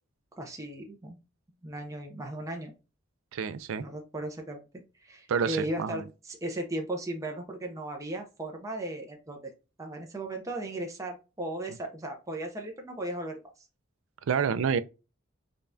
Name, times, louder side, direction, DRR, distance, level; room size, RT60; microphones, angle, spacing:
voice 1, 0.4-1.2 1.6-2.7 3.8-4.6 5.0-9.5 9.8-13.7, right 1 dB, 15° right, 0.5 m, -36 dB
voice 2, 3.3-3.8 5.3-6.0 14.3-14.8, right 6 dB, 75° right, 0.4 m, -28 dB
5.1 x 2.3 x 2.6 m
head